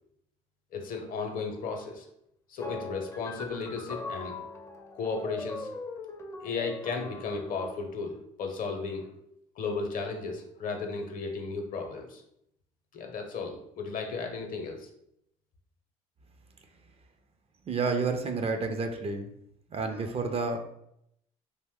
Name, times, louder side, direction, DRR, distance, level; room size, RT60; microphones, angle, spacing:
voice 1, 0.7-2.1 2.5-4.4 4.9-5.7 6.4-9.1 9.6-12.2 12.9-14.9, left 4 dB, 55° left, 4 dB, 0.7 m, -34 dB
sound 1, 2.6-7.8, left 3 dB, 15° left, 0.5 m, -41 dB
voice 2, 17.7-19.3 19.7-20.6, right 4 dB, 35° right, 6 dB, 0.5 m, -30 dB
2.6 x 2.1 x 3.5 m, 0.76 s
hypercardioid pair, 60°, 17 cm